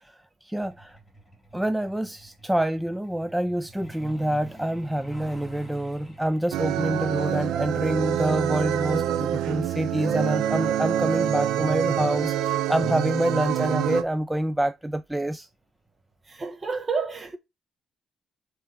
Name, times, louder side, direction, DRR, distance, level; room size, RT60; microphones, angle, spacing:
voice 1, 0.4-1.0 1.5-15.5, right 1 dB, 5° right, 0.4 m, -27 dB
Truck, 0.6-12.9 14.1-14.3 14.7-14.9 15.3-15.5 15.9-16.0 16.4-16.5, right 2 dB, 10° left, 2.7 m, -48 dB
sound 1, 6.5-14.0, right 10 dB, 90° right, 0.7 m, -26 dB
voice 2, 16.3-17.4, right 5 dB, 30° right, 1.6 m, -30 dB
7.2 x 3.8 x 4.1 m
cardioid pair, 90°, 0 cm